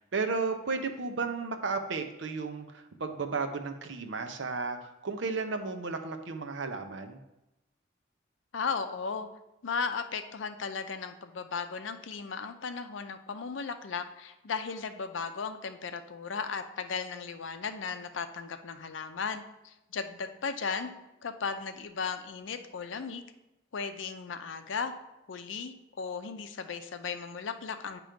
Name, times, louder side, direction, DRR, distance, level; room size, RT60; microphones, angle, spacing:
voice 1, 0.0-7.2, right 4 dB, 75° right, 6 dB, 0.7 m, -34 dB
voice 2, 8.5-9.3 9.6-20.9 21.2-23.3 23.7-24.9 25.3-28.0, left 5 dB, 80° left, 8 dB, 0.5 m, -36 dB
8.9 x 3.0 x 5.1 m, 0.94 s
head